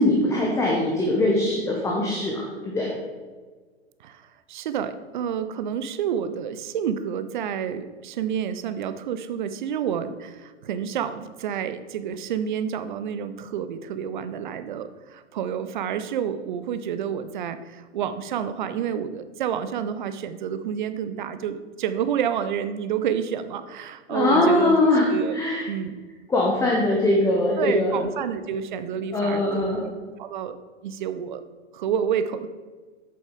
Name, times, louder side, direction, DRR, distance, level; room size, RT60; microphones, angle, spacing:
voice 1, 0.0-2.9 24.1-25.7 26.3-28.1 29.1-29.8, left 1 dB, 10° left, -2 dB, 0.9 m, -22 dB
voice 2, 4.0-24.8 25.1-25.4 25.7-26.0 27.6-29.8 30.2-30.6 30.8-31.4 31.7-32.5, right 8 dB, 40° right, 11 dB, 0.6 m, -29 dB
8.5 x 7.0 x 3.7 m, 1.4 s
figure-of-eight pair, 110°, 36 cm